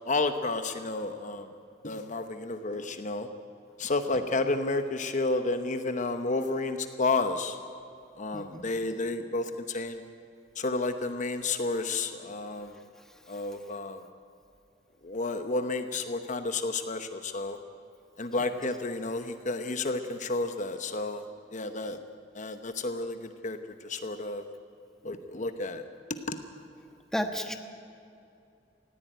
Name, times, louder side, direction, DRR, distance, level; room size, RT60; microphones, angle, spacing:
voice 1, 0.1-1.5 1.8-3.3 3.8-7.6 8.2-10.0 10.6-12.8 13.3-14.0 15.0-17.6 18.2-21.2 21.5-22.0 22.3-24.5 25.0-25.8 26.3-26.4, left 3 dB, 45° left, 8 dB, 0.9 m, -31 dB
voice 2, 8.3-8.7 13.0-13.4 18.4-18.5 27.1-27.5, equal, 5° left, 5 dB, 1.3 m, -34 dB
19.0 x 15.5 x 9.1 m, 2.6 s
head